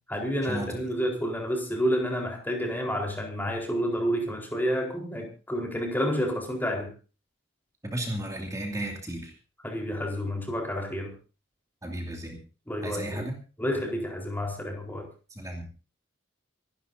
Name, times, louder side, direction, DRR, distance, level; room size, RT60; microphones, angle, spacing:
voice 1, 0.1-6.9 9.6-11.1 12.7-13.3 13.6-15.1, equal, 10° left, 1 dB, 4.2 m, -29 dB
voice 2, 7.8-9.3 11.8-12.4 12.8-13.3 15.4-15.7, right 1 dB, 15° right, 1 dB, 2.5 m, -34 dB
27.0 x 12.5 x 2.7 m, 0.35 s
head